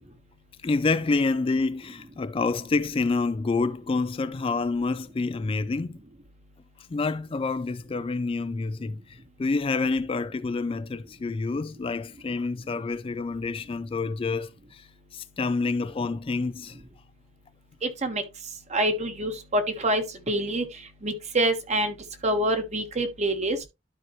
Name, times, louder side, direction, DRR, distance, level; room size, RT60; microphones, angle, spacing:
voice 1, 0.6-6.0 6.9-16.8, left 3 dB, 30° left, 0.3 m, -28 dB
voice 2, 17.8-18.2 18.7-20.7 21.0-21.9 22.2-23.6, right 1 dB, 35° right, 1.3 m, -26 dB
12.0 x 4.5 x 3.0 m
head